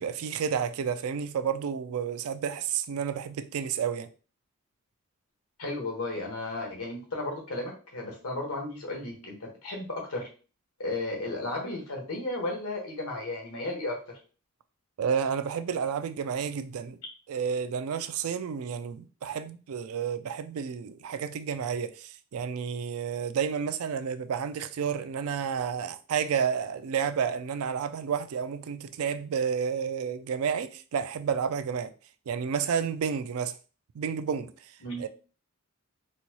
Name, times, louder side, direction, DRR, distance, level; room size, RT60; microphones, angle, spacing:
voice 1, 0.0-4.1 15.0-17.0 17.3-31.9 32.3-33.6 33.9-34.7 35.0-35.1, right 7 dB, 75° right, 0.3 m, -31 dB
voice 2, 5.6-10.3 10.8-14.0 34.8-35.0, left 2 dB, 85° left, 1.3 m, -34 dB
4.1 x 2.3 x 2.9 m
head